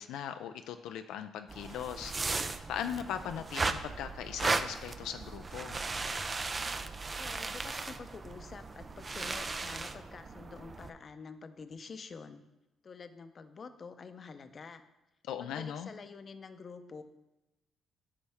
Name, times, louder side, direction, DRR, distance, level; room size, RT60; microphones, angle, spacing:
voice 1, 0.0-2.4 2.7-5.8 15.3-15.9, left 9 dB, 90° left, 8 dB, 0.3 m, -39 dB
sound 1, 1.5-10.9, right 3 dB, 30° right, 0.5 m, -36 dB
voice 2, 7.2-12.4 12.8-14.8 15.4-17.0, left 5 dB, 45° left, 9 dB, 0.6 m, -48 dB
9.7 x 5.6 x 3.5 m, 0.98 s
cardioid pair, 90°, 0 cm